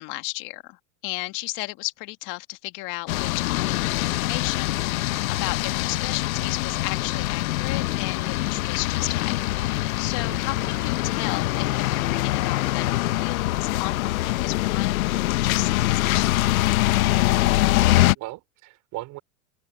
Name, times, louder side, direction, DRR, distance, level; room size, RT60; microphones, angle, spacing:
voice 1, 0.0-9.4 9.6-16.6, left 22 dB, 50° left, 1.9 m, -34 dB
sound 1, 3.1-18.2, left 17 dB, 75° left, 1.0 m, -24 dB
voice 2, 10.3-10.7 17.7-19.2, right 19 dB, 45° right, 4.6 m, -39 dB
open air
supercardioid pair, 130°, 42 cm